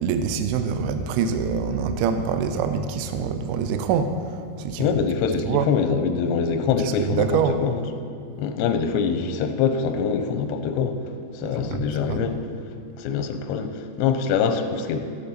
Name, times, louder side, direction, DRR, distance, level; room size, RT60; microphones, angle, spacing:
voice 1, 0.0-4.9 5.5-5.7 6.8-7.6 11.4-12.3, right 6 dB, 80° right, 7 dB, 2.3 m, -25 dB
voice 2, 4.8-7.8 8.4-11.0 11.3-12.4 13.0-15.0, left 6 dB, 85° left, 6 dB, 2.7 m, -24 dB
15.0 x 10.5 x 4.2 m, 2.7 s
omnidirectional pair, 5.3 m